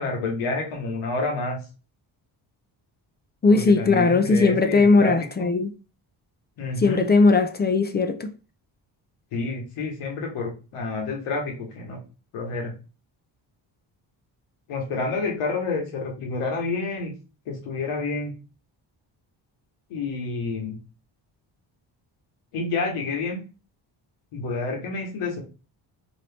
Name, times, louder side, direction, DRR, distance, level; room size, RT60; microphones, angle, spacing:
voice 1, 0.0-1.6 3.5-5.1 5.4-5.5 6.6-7.0 9.3-12.0 12.3-12.7 14.7-17.1 17.5-18.3 19.9-20.8 22.5-23.4 24.3-25.4, left 3 dB, 85° left, 1.2 m, -29 dB
voice 2, 3.4-5.7 6.8-8.3, left 3 dB, 20° left, 0.4 m, -19 dB
2.9 x 2.6 x 3.3 m
cardioid pair, 65°, 50 cm